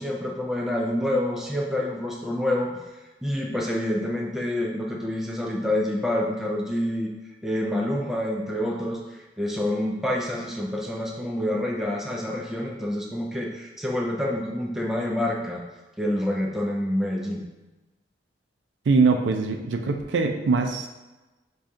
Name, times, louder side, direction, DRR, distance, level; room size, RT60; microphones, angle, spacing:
voice 1, 0.0-2.8 3.2-7.1 7.4-9.0 9.4-15.6 16.0-17.4, left 1 dB, ahead, -1 dB, 0.4 m, -27 dB
voice 2, 18.9-20.9, right 4 dB, 85° right, 4 dB, 0.4 m, -22 dB
4.8 x 2.3 x 2.6 m, 1.1 s
head